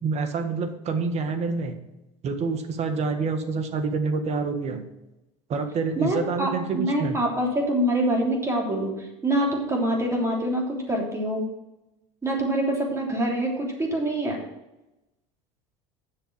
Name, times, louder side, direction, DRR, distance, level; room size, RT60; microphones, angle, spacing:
voice 1, 0.0-1.8 2.2-4.8 5.5-7.2, right 4 dB, 45° right, 8 dB, 1.5 m, -27 dB
voice 2, 6.0-11.4 12.2-14.4, right 1 dB, 20° right, 0 dB, 3.1 m, -25 dB
8.1 x 6.6 x 6.1 m, 0.95 s
supercardioid pair, 100°, 16 cm